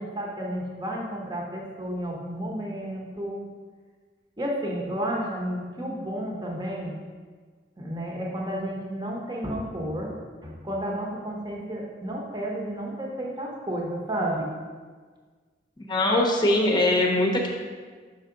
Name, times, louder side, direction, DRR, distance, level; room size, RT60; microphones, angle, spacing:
voice 1, 0.0-3.4 4.4-7.0 7.8-14.5, right 1 dB, 25° right, -1 dB, 1.0 m, -32 dB
voice 2, 15.8-17.5, left 1 dB, 25° left, 0 dB, 0.8 m, -22 dB
5.7 x 5.6 x 3.9 m, 1.5 s
head